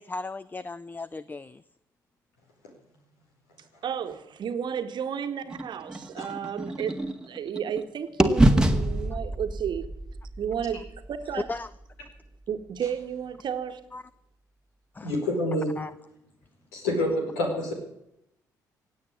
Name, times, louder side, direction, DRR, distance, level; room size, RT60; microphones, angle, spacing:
voice 1, 0.0-1.6 11.5-11.7 13.9-14.0 15.0-15.1 15.8-15.9, left 3 dB, 20° left, 0.6 m, -36 dB
voice 2, 3.8-9.9 10.4-11.5 12.5-13.8, right 8 dB, 50° right, 1.6 m, -33 dB
sound 1, 5.5-7.8 8.2-12.2, right 1 dB, 10° right, 1.7 m, -26 dB
voice 3, 15.0-15.7 16.7-17.7, left 1 dB, 75° left, 4.7 m, -27 dB
17.0 x 8.8 x 9.6 m
figure-of-eight pair, 45°, 10 cm